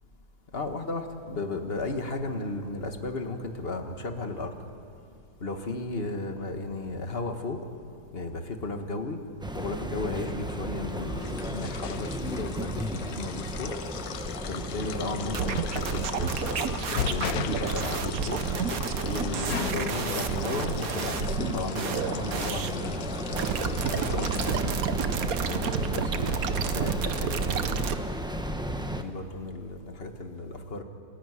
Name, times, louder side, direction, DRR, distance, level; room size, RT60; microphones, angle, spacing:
voice 1, 0.5-4.5 5.4-7.6 8.1-9.2 9.6-13.7 14.5-16.7 17.1-18.4 19.0-23.5 23.9-24.7 25.5-26.4 26.7-27.8 28.9-30.8, left 2 dB, 35° left, 5 dB, 1.8 m, -34 dB
sound 1, 9.4-29.0, equal, 5° right, 0.6 m, -35 dB
sound 2, 11.0-24.6, left 9 dB, 65° left, 1.2 m, -37 dB
sound 3, 15.3-22.9 23.4-28.0, right 7 dB, 60° right, 1.3 m, -31 dB
26.5 x 16.0 x 9.8 m, 2.5 s
omnidirectional pair, 1.9 m